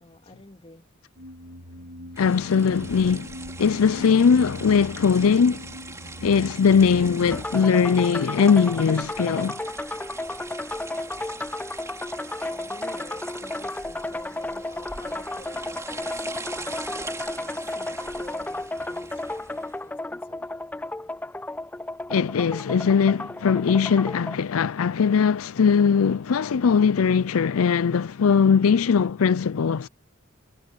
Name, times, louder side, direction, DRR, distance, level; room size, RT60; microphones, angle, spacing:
voice 1, 0.0-2.2 12.5-16.3 16.5-20.6, left 1 dB, 25° left, 2.6 m, -49 dB
sound 1, 1.2-7.4, equal, 80° right, 2.9 m, -40 dB
voice 2, 2.2-3.3 3.6-5.7 6.2-9.6 22.1-29.9, left 6 dB, 75° left, 0.5 m, -20 dB
sound 2, 2.2-19.8, right 3 dB, 15° right, 2.8 m, -42 dB
sound 3, 7.3-24.4, left 2 dB, 10° left, 0.4 m, -33 dB
head